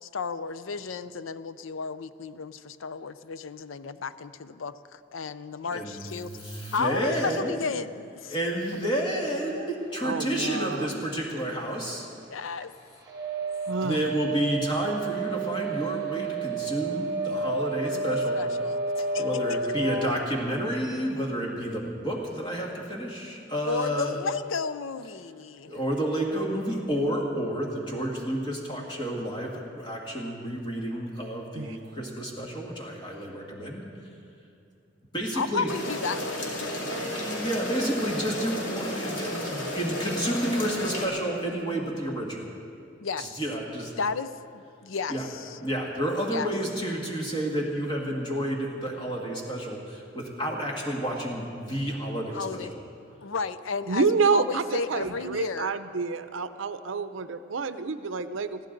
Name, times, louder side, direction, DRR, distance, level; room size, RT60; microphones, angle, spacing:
voice 1, 0.0-6.3 6.7-8.4 12.3-12.7 17.8-19.4 23.7-25.7 35.3-37.1 43.0-43.4 44.0-45.6 46.3-46.5 52.3-52.7 53.2-55.7, left 5 dB, 85° left, 13 dB, 0.6 m, -33 dB
voice 2, 5.7-7.6 8.3-12.1 13.7-18.4 19.2-24.3 25.7-33.8 35.1-35.7 36.8-42.5 43.2-43.9 45.1-45.3 45.6-52.8, right 1 dB, 25° left, -2 dB, 1.7 m, -30 dB
voice 3, 10.0-10.9 13.7-14.0 31.5-31.8 53.9-58.6, right 4 dB, 75° right, 11 dB, 0.6 m, -28 dB
sound 1, 13.1-20.0, right 3 dB, 20° right, 1.6 m, -30 dB
sound 2, 35.7-41.1, left 1 dB, 65° left, 2.8 m, -33 dB
21.0 x 15.0 x 3.9 m, 2.6 s
head